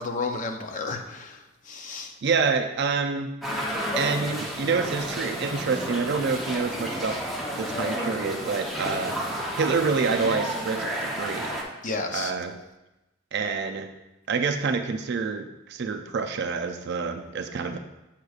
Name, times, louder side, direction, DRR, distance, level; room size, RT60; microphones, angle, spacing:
voice 1, 0.0-1.4 1.7-2.1 11.8-12.3, left 3 dB, 40° left, 4 dB, 0.6 m, -31 dB
voice 2, 2.2-3.3 3.9-7.2 7.6-11.5 12.1-12.6 13.3-13.9 14.3-17.8, right 5 dB, 55° right, 6 dB, 0.4 m, -27 dB
sound 1, 3.4-11.6, equal, ahead, 0.8 m, -31 dB
7.3 x 6.4 x 2.4 m, 0.97 s
head